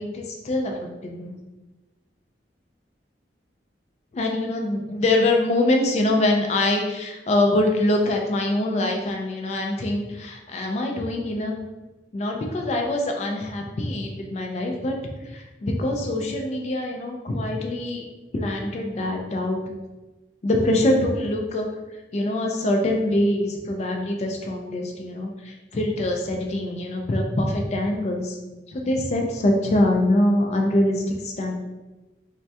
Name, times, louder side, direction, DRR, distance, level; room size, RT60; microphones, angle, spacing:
voice 1, 0.0-1.4 4.1-11.6 12.1-15.0 15.3-19.6 20.4-21.7 22.1-28.4 28.7-31.6, left 1 dB, 40° left, 2 dB, 0.3 m, -24 dB
2.2 x 2.1 x 2.7 m, 1.1 s
head